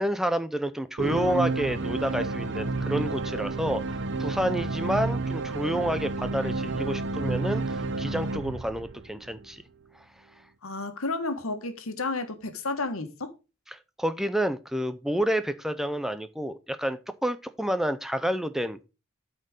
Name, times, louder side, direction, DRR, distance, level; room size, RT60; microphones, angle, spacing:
voice 1, 0.0-9.6 13.7-18.9, right 1 dB, ahead, 0.4 m, -29 dB
sound 1, 1.0-9.4, right 3 dB, 55° right, 0.8 m, -30 dB
voice 2, 10.6-13.3, left 3 dB, 80° left, 1.5 m, -31 dB
8.7 x 4.4 x 6.4 m
head